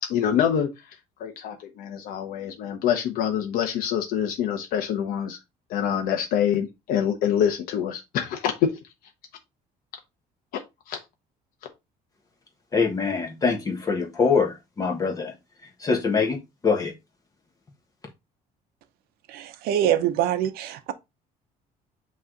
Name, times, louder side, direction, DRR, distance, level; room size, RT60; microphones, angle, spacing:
voice 1, 0.0-0.7 1.2-5.4 5.7-8.7 10.9-11.0, left 9 dB, 65° left, 1.0 m, -25 dB
voice 2, 12.7-15.3 15.8-16.4 16.6-16.9, left 5 dB, 20° left, 1.4 m, -23 dB
voice 3, 19.3-20.9, right 11 dB, 75° right, 0.8 m, -24 dB
8.4 x 3.2 x 3.9 m
cardioid pair, 165°, 16 cm